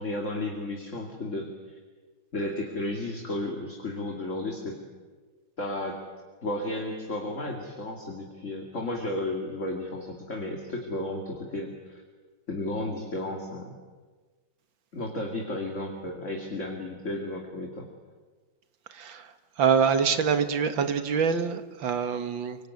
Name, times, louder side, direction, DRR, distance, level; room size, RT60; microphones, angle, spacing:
voice 1, 0.0-1.8 2.3-4.8 5.6-6.0 6.4-12.0 12.5-13.7 14.9-17.9, left 2 dB, 40° left, 2 dB, 2.8 m, -33 dB
voice 2, 19.6-22.6, right 6 dB, 75° right, 10 dB, 2.2 m, -25 dB
25.0 x 24.5 x 9.6 m, 1.4 s
omnidirectional pair, 2.1 m